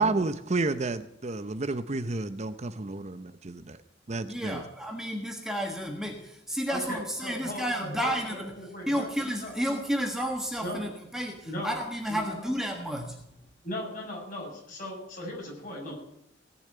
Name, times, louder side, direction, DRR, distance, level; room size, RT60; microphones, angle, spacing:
voice 1, 0.0-3.8 4.1-4.6, right 3 dB, 35° right, 11 dB, 0.7 m, -30 dB
voice 2, 4.3-8.6 8.9-13.2, equal, 5° right, 2 dB, 1.4 m, -32 dB
voice 3, 6.7-9.1 9.4-9.5 10.6-10.8 11.4-11.7 12.1-12.3 13.6-15.9, left 1 dB, 45° left, -2 dB, 7.3 m, -37 dB
18.0 x 7.2 x 9.4 m, 0.76 s
head